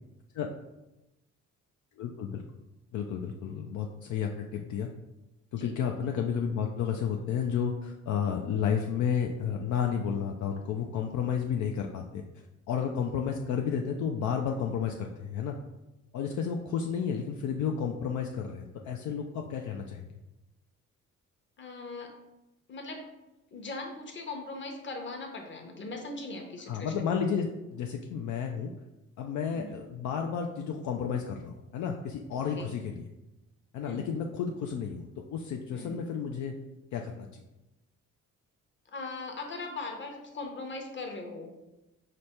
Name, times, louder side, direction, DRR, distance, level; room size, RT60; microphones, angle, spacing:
voice 1, 2.0-2.4 2.9-4.9 5.5-12.2 12.7-15.6 16.1-20.0 26.7-28.7 29.2-33.0 33.7-36.5 36.9-37.4, left 7 dB, 70° left, 2 dB, 0.5 m, -32 dB
voice 2, 21.6-22.1 22.7-23.0 23.5-26.9 29.5-29.8 32.5-32.7 33.8-34.1 35.7-36.0 38.9-41.5, left 3 dB, 40° left, 2 dB, 0.9 m, -39 dB
5.0 x 2.1 x 4.3 m, 0.97 s
cardioid pair, 90°, 30 cm